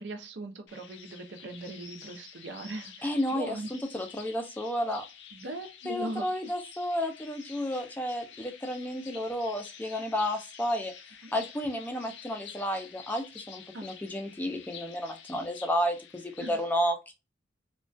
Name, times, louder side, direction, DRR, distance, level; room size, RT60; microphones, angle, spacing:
voice 1, 0.0-3.7 5.3-6.5 11.2-11.3 13.7-13.9 16.4-16.6, right 2 dB, 80° right, 0.5 m, -40 dB
sound 1, 0.7-16.5, left 7 dB, 75° left, 0.4 m, -49 dB
voice 2, 3.0-5.0 5.9-10.9 11.3-17.1, equal, 10° left, 0.3 m, -32 dB
2.3 x 2.1 x 2.5 m
head